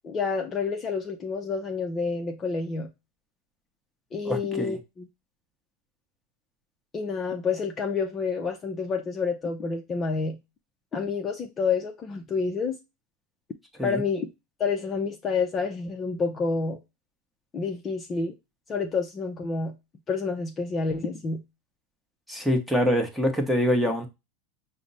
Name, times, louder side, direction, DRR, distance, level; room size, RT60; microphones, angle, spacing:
voice 1, 0.0-2.9 4.1-5.1 6.9-10.4 10.9-12.8 13.8-14.3 14.6-16.8 17.5-18.3 18.7-19.7 20.1-21.4, left 4 dB, 25° left, 0.5 m, -28 dB
voice 2, 4.2-4.8 13.8-14.0 22.3-24.1, equal, ahead, 0.9 m, -25 dB
4.9 x 2.0 x 3.9 m
supercardioid pair, 125°, 0 cm